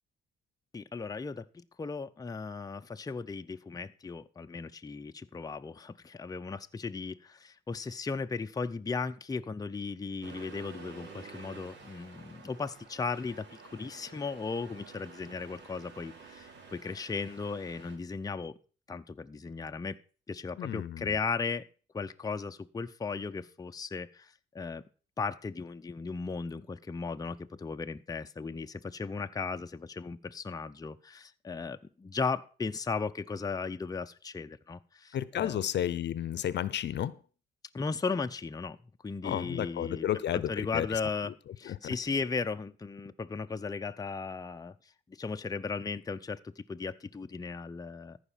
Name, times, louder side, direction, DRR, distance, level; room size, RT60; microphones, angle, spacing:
voice 1, 0.7-18.6 18.9-20.0 20.3-21.7 21.9-24.8 25.2-35.6 37.7-38.8 39.0-40.1 40.3-44.8 45.2-48.2, left 4 dB, 20° left, 0.6 m, -36 dB
Accelerating revving vroom, 10.2-18.0, right 4 dB, 65° right, 3.1 m, -50 dB
voice 2, 20.6-21.1 35.1-37.2 39.2-41.3 41.6-41.9, left 10 dB, 60° left, 0.7 m, -32 dB
14.5 x 5.1 x 7.3 m
cardioid pair, 90°, 20 cm